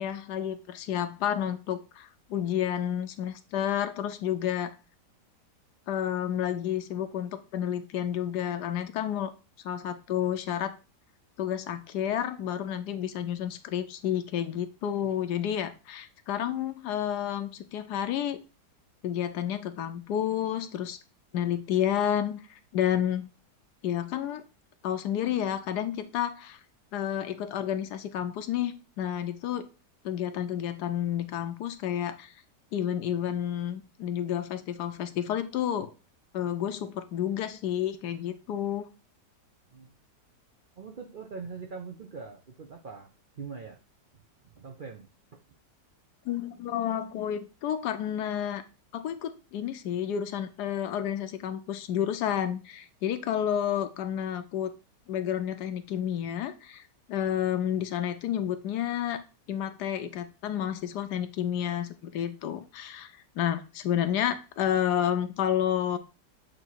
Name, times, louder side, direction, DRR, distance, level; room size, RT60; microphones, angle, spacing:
voice 1, 0.0-4.7 5.9-9.3 9.6-10.7 11.4-18.4 19.0-21.0 21.3-23.3 23.8-24.4 24.8-26.6 26.9-29.7 30.0-32.3 32.7-35.9 36.3-38.9 46.3-48.6 48.9-54.7 55.1-56.8 57.1-59.2 59.5-66.0, left 10 dB, 75° left, 10 dB, 1.2 m, -30 dB
voice 2, 40.7-43.1 43.4-43.8 44.5-45.4, right 5 dB, 65° right, 1 dB, 0.5 m, -42 dB
7.6 x 2.8 x 4.5 m, 0.32 s
omnidirectional pair, 1.9 m